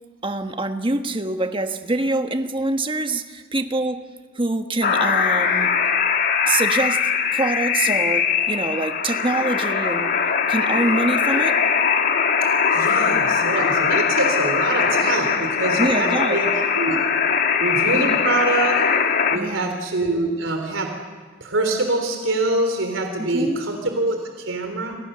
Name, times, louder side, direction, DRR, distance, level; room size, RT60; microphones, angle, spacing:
voice 1, 0.2-4.0 4.3-5.7 6.5-10.1 10.5-11.6 15.8-16.4 19.3-19.7 23.2-23.6, right 2 dB, 25° right, 7 dB, 1.4 m, -25 dB
sound 1, 4.8-19.4, left 6 dB, 50° left, 1.7 m, -21 dB
voice 2, 12.7-17.0 17.6-18.8 19.3-20.9 21.4-25.0, right 2 dB, 85° right, 4 dB, 3.6 m, -24 dB
30.0 x 25.5 x 6.8 m, 1.4 s
head